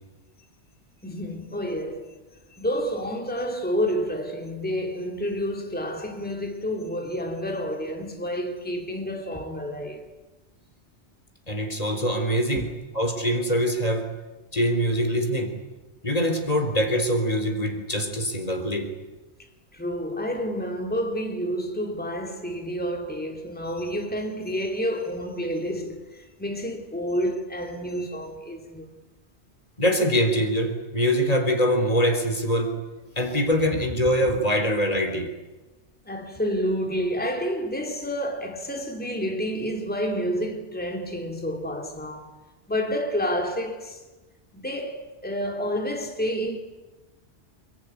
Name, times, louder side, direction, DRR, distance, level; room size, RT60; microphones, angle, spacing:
voice 1, 1.0-2.2 2.5-10.1 12.5-12.6 19.7-28.9 36.1-42.3 42.7-44.0 44.5-46.6, equal, 10° left, 2.7 m, -29 dB
voice 2, 11.5-12.7 12.9-14.1 14.5-15.6 16.0-18.9 29.8-32.7 33.2-35.3, equal, 30° left, 3.8 m, -23 dB
23.5 x 23.0 x 9.7 m
omnidirectional pair, 1.2 m